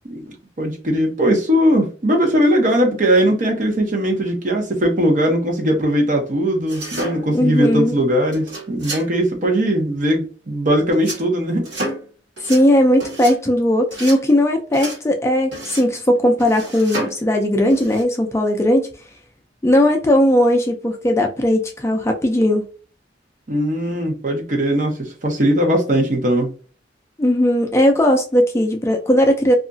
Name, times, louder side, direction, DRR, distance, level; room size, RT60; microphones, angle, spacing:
voice 1, 0.1-11.7 23.5-26.5, equal, 45° right, 0.8 m, -19 dB
sound 1, 6.7-7.5 8.3-9.1 10.9-11.3 11.6-12.1 12.4-12.6 13.0-13.4 13.9-14.2 14.7-15.0 15.5-15.9 16.4-17.2 17.7-18.0, right 1 dB, 70° right, 1.2 m, -30 dB
voice 2, 7.3-8.0 12.4-18.9 19.6-22.6 27.2-29.5, left 1 dB, 15° left, 0.3 m, -17 dB
2.8 x 2.4 x 2.5 m
head